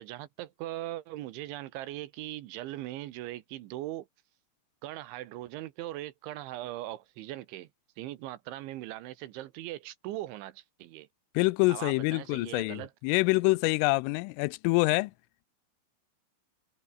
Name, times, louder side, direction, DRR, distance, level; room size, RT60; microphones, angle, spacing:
voice 1, 0.0-4.1 4.8-7.7 8.0-11.1 11.7-12.9, right 15 dB, 75° right, 3.3 m, -40 dB
voice 2, 11.4-15.1, left 25 dB, 85° left, 3.1 m, -26 dB
omnidirectional pair, 5.8 m